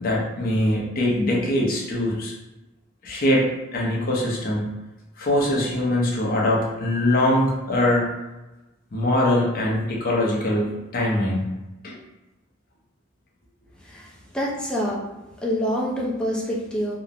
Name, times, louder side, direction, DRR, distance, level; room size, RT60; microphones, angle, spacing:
voice 1, 0.0-2.3 3.0-4.7 5.2-8.1 8.9-11.5 11.8-11.9, left 1 dB, 50° left, -3 dB, 0.7 m, -22 dB
voice 2, 13.8-15.1 15.4-17.0, equal, 5° left, -4 dB, 0.5 m, -26 dB
3.0 x 2.0 x 2.5 m, 1.0 s
head